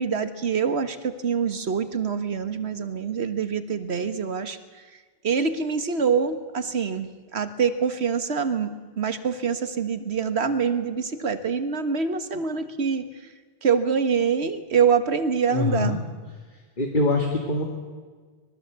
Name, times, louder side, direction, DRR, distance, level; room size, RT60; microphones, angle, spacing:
voice 1, 0.0-4.6 5.2-13.1 13.6-16.0, right 6 dB, 80° right, 10 dB, 1.7 m, -25 dB
voice 2, 15.5-16.0 16.8-17.6, left 2 dB, 50° left, 2 dB, 2.4 m, -23 dB
25.5 x 21.0 x 8.2 m, 1.5 s
omnidirectional pair, 1.1 m